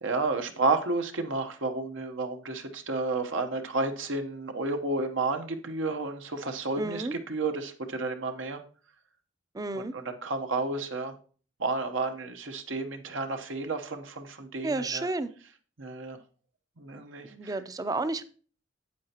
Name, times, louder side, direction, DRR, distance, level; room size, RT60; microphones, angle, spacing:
voice 1, 0.0-8.6 9.7-11.1 11.6-15.1 15.8-16.2 16.8-17.5, right 3 dB, 80° right, 6 dB, 1.0 m, -31 dB
voice 2, 6.8-7.1 9.5-9.9 14.6-15.3 17.3-18.2, right 2 dB, 20° right, 12 dB, 0.4 m, -31 dB
8.6 x 7.9 x 2.9 m, 0.40 s
head